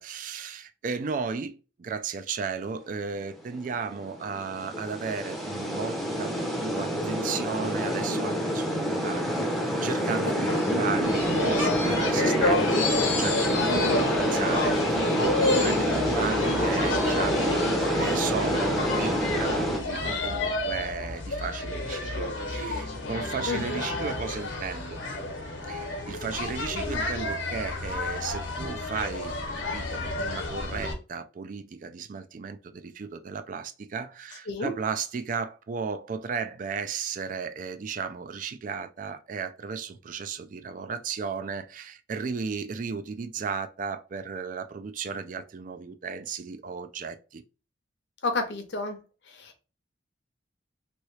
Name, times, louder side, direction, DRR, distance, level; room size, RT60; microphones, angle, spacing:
voice 1, 0.0-9.5 9.8-25.0 25.6-29.4 29.7-47.4, right 5 dB, 45° right, 0.3 m, -35 dB
sound 1, 3.5-19.8, equal, ahead, 0.6 m, -27 dB
voice 2, 10.5-10.8 13.7-14.1 23.5-23.8 34.5-34.7 48.2-49.0 49.3-49.7, left 3 dB, 60° left, 0.7 m, -31 dB
sound 2, 11.0-30.9, left 2 dB, 85° left, 1.0 m, -30 dB
3.0 x 2.7 x 3.1 m
head